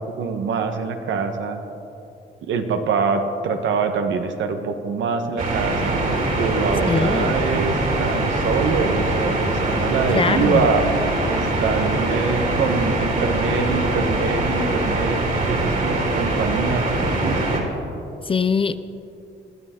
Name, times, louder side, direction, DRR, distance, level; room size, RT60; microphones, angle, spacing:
voice 1, 0.0-1.6 2.4-6.0 6.4-10.8 11.2-15.2 15.5-17.7, right 5 dB, 70° right, 6 dB, 1.4 m, -24 dB
sound 1, 5.4-17.6, right 2 dB, 45° right, 3.1 m, -22 dB
voice 2, 6.9-7.4 10.1-10.7 18.2-18.8, left 5 dB, 25° left, 13 dB, 0.5 m, -22 dB
20.5 x 12.5 x 3.8 m, 2.8 s
cardioid pair, 90°, 20 cm